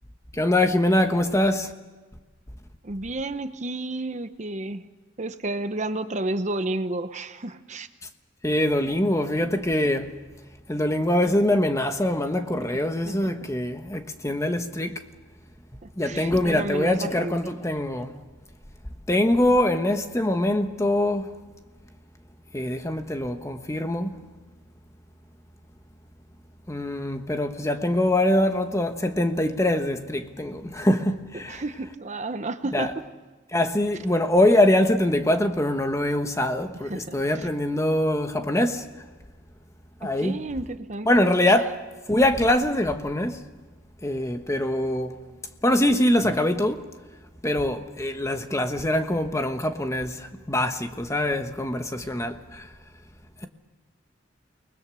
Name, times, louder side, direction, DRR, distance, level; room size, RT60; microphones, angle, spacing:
voice 1, 0.3-1.7 8.4-10.2 10.7-15.0 16.0-18.2 19.1-21.4 22.5-24.2 26.7-31.6 32.7-32.9 33.5-38.9 40.0-40.4 41.0-41.8 42.1-43.4 44.0-45.2 45.6-46.8 47.4-52.7, left 1 dB, 15° left, 1.2 m, -23 dB
voice 2, 2.8-4.9 5.2-7.9 13.0-13.3 16.0-17.5 19.4-19.5 31.5-33.0 36.7-37.5 40.0-41.6 52.0-52.1, right 2 dB, 35° right, 0.8 m, -32 dB
29.5 x 20.5 x 6.3 m
head